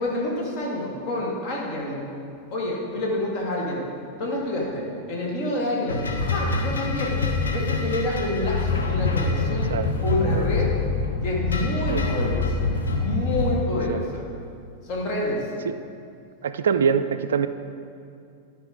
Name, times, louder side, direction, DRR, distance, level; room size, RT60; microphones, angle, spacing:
voice 1, 0.0-2.0 2.5-3.9 4.2-7.2 7.5-9.7 10.0-10.7 11.2-12.7 13.0-14.2 14.8-15.5, left 1 dB, 40° left, -3 dB, 2.1 m, -28 dB
sound 1, 5.9-13.6, left 3 dB, 70° left, 1.0 m, -25 dB
voice 2, 16.4-17.5, right 6 dB, 65° right, 11 dB, 0.3 m, -24 dB
12.0 x 5.2 x 4.9 m, 2.4 s
figure-of-eight pair, 90°, 0 cm